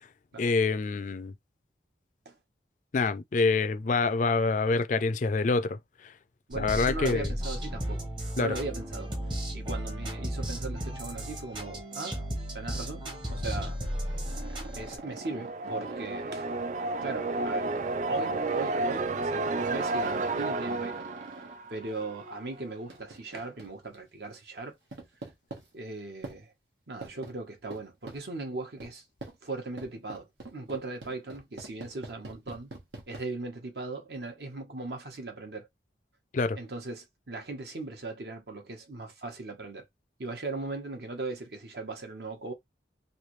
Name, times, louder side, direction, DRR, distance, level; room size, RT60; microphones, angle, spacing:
voice 1, 0.4-1.3 2.9-5.8 6.6-7.3 8.4-8.5 36.3-36.6, left 4 dB, 45° left, 0.4 m, -26 dB
sound 1, 6.5-15.0, equal, 25° right, 0.9 m, -34 dB
voice 2, 6.5-8.1 8.4-9.1 9.5-12.2 12.5-13.8 14.7-16.5 17.0-17.7 18.1-21.1 21.7-24.7 25.7-26.5 26.9-29.0 29.4-32.7 33.1-35.7 36.5-39.9 40.2-42.5, right 3 dB, 65° right, 1.0 m, -38 dB
sound 2, 13.5-21.6 22.9-24.0 24.9-25.6 26.2-26.4 27.0-27.3 27.7-28.2 28.8-28.9 29.2-29.4 29.8-33.2, right 2 dB, 90° right, 1.1 m, -45 dB
sound 3, 14.7-22.5, right 2 dB, 45° right, 0.3 m, -32 dB
3.2 x 2.6 x 3.0 m
head